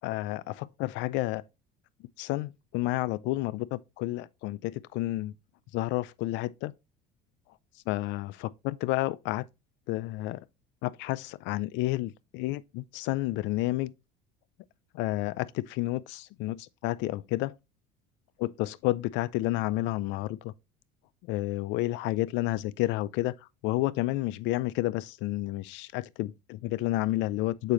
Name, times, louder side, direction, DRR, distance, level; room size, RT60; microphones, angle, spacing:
voice 1, 0.0-1.4 2.2-5.3 5.7-6.7 7.9-9.5 9.9-10.4 10.8-13.9 14.9-17.5 18.4-20.5 21.3-23.3 23.6-27.7, left 17 dB, 65° left, 0.5 m, -30 dB
6.8 x 4.8 x 3.0 m
supercardioid pair, 95°, 20 cm